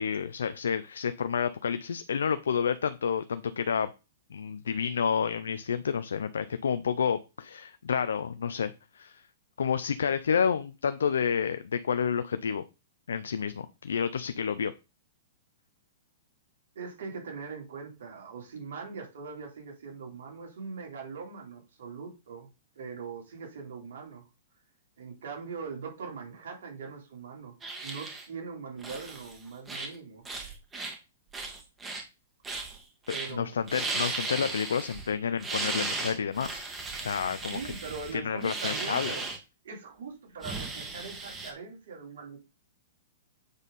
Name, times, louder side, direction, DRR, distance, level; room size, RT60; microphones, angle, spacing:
voice 1, 0.0-3.9 4.3-9.2 9.6-12.6 13.1-14.7 33.3-36.6 36.9-37.6 38.1-39.1, left 7 dB, 85° left, 0.6 m, -29 dB
voice 2, 16.8-22.5 22.8-24.3 25.0-30.2 33.1-33.7 37.5-39.2 39.6-42.4, right 5 dB, 75° right, 3.3 m, -41 dB
sound 1, 27.6-28.3 28.8-29.3 29.7-30.0 30.3-30.9 31.3-32.0 32.4-32.8 33.1-33.3 33.6-35.1 35.4-39.4 40.4-41.5, right 3 dB, 15° right, 2.0 m, -36 dB
8.0 x 4.1 x 5.4 m
hypercardioid pair, 135°, 0 cm